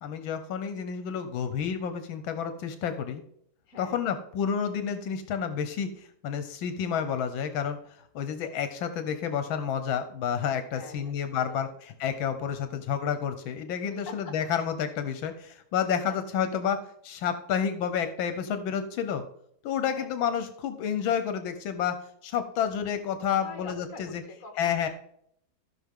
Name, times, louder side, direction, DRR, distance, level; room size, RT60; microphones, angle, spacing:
voice 1, 0.0-3.2 3.8-19.2 19.6-24.2 24.6-24.9, left 7 dB, 80° left, 9 dB, 1.6 m, -30 dB
voice 2, 3.7-4.0 10.7-11.6 13.9-14.1 16.0-16.2 19.9-20.1 23.3-24.9, left 4 dB, 45° left, 5 dB, 1.9 m, -45 dB
14.5 x 6.0 x 3.7 m, 0.70 s
omnidirectional pair, 2.1 m